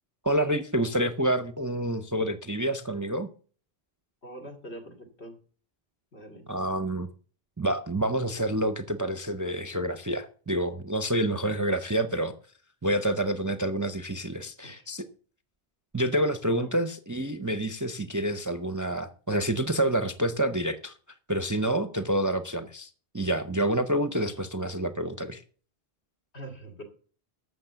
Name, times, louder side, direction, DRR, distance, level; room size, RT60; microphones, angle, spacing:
voice 1, 0.2-3.3 6.5-7.1 7.6-12.3 12.8-15.0 15.9-20.9 21.3-25.4, right 1 dB, 20° right, 0.5 m, -28 dB
voice 2, 4.2-5.4 6.1-6.5 14.6-14.9 16.6-16.7 26.3-26.8, right 1 dB, 75° left, 2.7 m, -43 dB
12.0 x 7.2 x 6.8 m
omnidirectional pair, 1.1 m